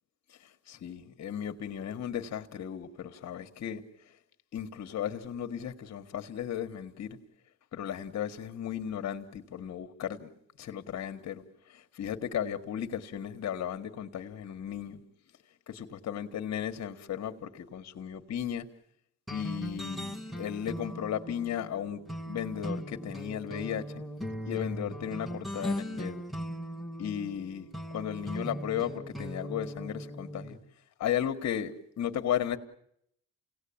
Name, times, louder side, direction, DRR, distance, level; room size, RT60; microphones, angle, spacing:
voice 1, 0.7-3.8 4.5-7.2 7.7-10.3 10.6-15.0 15.7-18.7 19.3-22.0 22.3-24.0 24.4-26.2 27.0-30.6 31.0-32.6, left 9 dB, 60° left, 1.7 m, -35 dB
sound 1, 19.3-30.6, equal, ahead, 1.8 m, -39 dB
29.0 x 17.5 x 8.7 m
cardioid pair, 90°, 30 cm